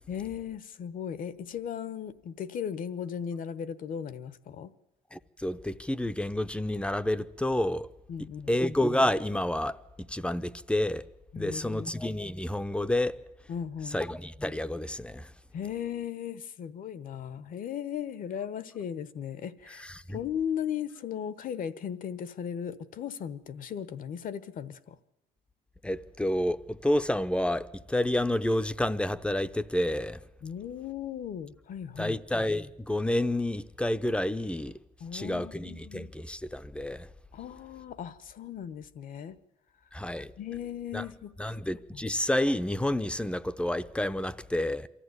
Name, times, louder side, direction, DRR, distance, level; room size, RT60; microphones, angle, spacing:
voice 1, 0.1-4.7 8.1-8.5 11.3-11.9 13.5-14.0 15.5-25.0 30.4-32.2 35.0-36.1 37.3-39.4 40.4-41.6 41.9-42.1, left 8 dB, 55° left, 1.0 m, -37 dB
voice 2, 5.1-7.9 8.5-11.0 11.4-13.2 13.9-15.3 19.8-20.2 25.8-30.2 32.0-34.8 35.1-37.1 39.9-40.3 40.9-41.0 41.4-44.9, left 1 dB, 5° left, 0.7 m, -29 dB
23.5 x 14.0 x 9.6 m
cardioid pair, 110°, 17 cm